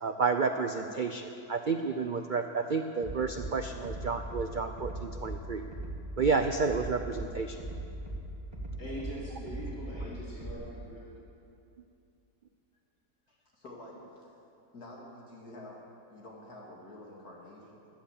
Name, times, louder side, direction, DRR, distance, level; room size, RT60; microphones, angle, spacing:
voice 1, 0.0-5.7 6.2-7.6, right 4 dB, 80° right, 7 dB, 0.4 m, -30 dB
Bass drum, 3.0-3.5 3.8-4.4 4.8-5.4 5.7-6.3 6.6-7.3 7.6-8.2 8.5-9.1 9.5-10.1 10.4-10.5, right 2 dB, 15° right, 2.0 m, -38 dB
voice 2, 8.8-11.1, right 1 dB, 10° left, -7 dB, 3.4 m, -42 dB
voice 3, 13.3-14.4 14.7-17.9, left 1 dB, 65° left, -3 dB, 2.8 m, -49 dB
16.0 x 11.5 x 7.3 m, 2.6 s
omnidirectional pair, 1.7 m